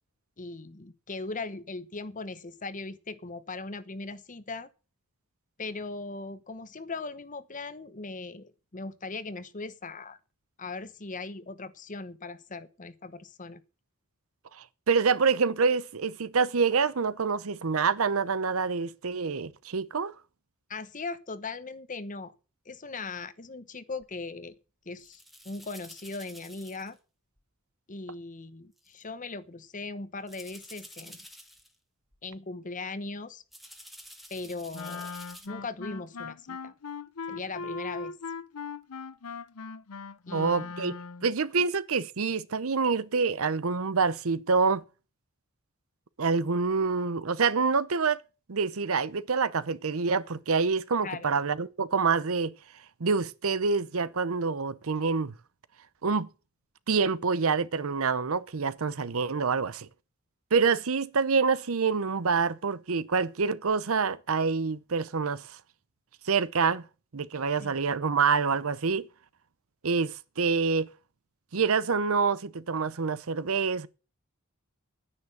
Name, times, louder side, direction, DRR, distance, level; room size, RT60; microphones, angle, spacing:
voice 1, 0.4-4.7 5.6-10.2 10.6-13.6 20.7-22.3 22.6-24.5 24.8-27.0 27.9-31.2 32.2-33.4 34.3-35.2 35.5-36.7 37.3-38.1 40.3-40.7 51.0-51.3 67.6-67.8, left 3 dB, 35° left, 1.0 m, -39 dB
voice 2, 14.6-20.1 40.3-40.9 41.2-44.8 46.2-48.2 48.5-52.5 53.0-55.3 56.0-56.3 56.9-59.9 60.5-65.6 66.2-66.8 67.1-69.1 69.8-70.9 71.5-73.9, right 5 dB, 70° right, 0.7 m, -26 dB
sound 1, 24.0-24.2 25.0-26.9 27.4-27.5 28.8-29.0 30.3-31.8 32.1-32.4 33.5-35.5, equal, ahead, 1.4 m, -49 dB
Wind instrument woodwind instrument, 34.7-41.4, left 4 dB, 90° left, 0.7 m, -39 dB
10.0 x 9.7 x 6.7 m
head